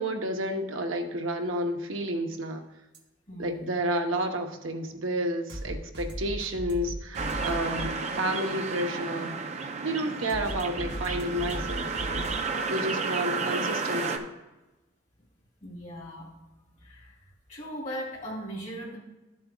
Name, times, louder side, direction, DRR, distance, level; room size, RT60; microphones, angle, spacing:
voice 1, 0.0-2.6 3.4-12.3 12.7-14.3, right 1 dB, 85° right, 4 dB, 0.9 m, -31 dB
sound 1, 2.9-3.0 5.5-7.9 10.3-12.4, equal, 55° right, 1.3 m, -36 dB
voice 2, 3.3-3.8 15.6-16.3 16.8-17.2 17.5-19.0, equal, 35° left, -5 dB, 3.1 m, -38 dB
sound 2, 7.1-14.2, right 4 dB, 35° right, 0.6 m, -32 dB
12.5 x 7.6 x 2.3 m, 1.1 s
head